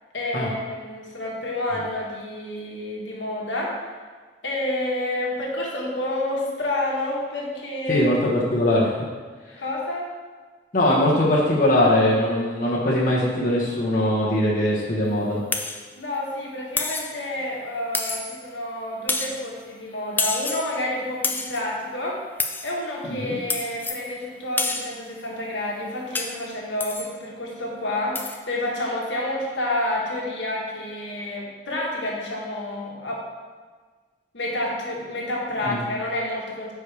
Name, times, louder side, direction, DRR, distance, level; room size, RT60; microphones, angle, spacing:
voice 1, 0.1-3.9 4.4-8.1 9.6-10.0 15.9-22.2 22.6-33.2 34.3-36.7, left 1 dB, 80° left, -3 dB, 1.5 m, -29 dB
voice 2, 7.9-8.9 10.7-15.4 23.2-23.4 35.6-35.8, left 1 dB, 45° left, -6 dB, 1.2 m, -21 dB
sound 1, 15.5-15.8 16.8-17.2 17.9-18.5 19.1-19.4 20.2-20.7 21.2-21.6 22.4-22.7 23.5-24.0 24.6-25.0 26.1-26.4 26.8-27.1 28.1-28.4, left 3 dB, 10° left, 0.3 m, -28 dB
9.4 x 4.7 x 3.4 m, 1.5 s
head